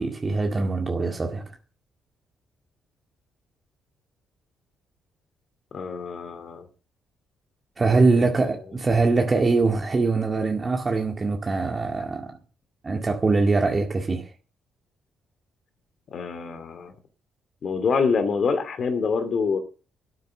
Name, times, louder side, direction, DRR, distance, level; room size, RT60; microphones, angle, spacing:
voice 1, 0.0-1.5 7.8-12.3 12.8-14.3, right 3 dB, 30° right, 2.0 m, -23 dB
voice 2, 5.7-6.7 8.2-8.3 16.1-16.9 17.6-19.6, left 5 dB, 55° left, 2.5 m, -26 dB
12.5 x 9.6 x 6.5 m
cardioid pair, 90°, 0 cm